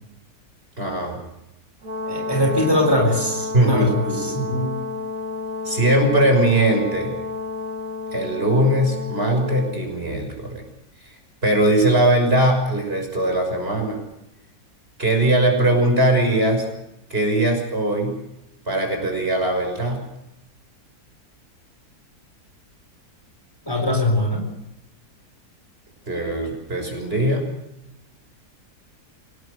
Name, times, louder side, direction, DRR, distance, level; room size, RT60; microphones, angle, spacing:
voice 1, 0.8-1.2 3.5-4.5 5.6-7.2 8.1-10.6 11.4-14.0 15.0-16.7 17.1-18.2 18.7-20.0 26.1-27.5, right 1 dB, 35° right, 3 dB, 6.3 m, -20 dB
Brass instrument, 1.8-9.8, left 3 dB, 55° right, 2.9 m, -30 dB
voice 2, 2.1-4.8 23.7-24.5, left 1 dB, 15° left, 3 dB, 4.3 m, -22 dB
26.5 x 19.0 x 6.7 m, 0.87 s
omnidirectional pair, 1.7 m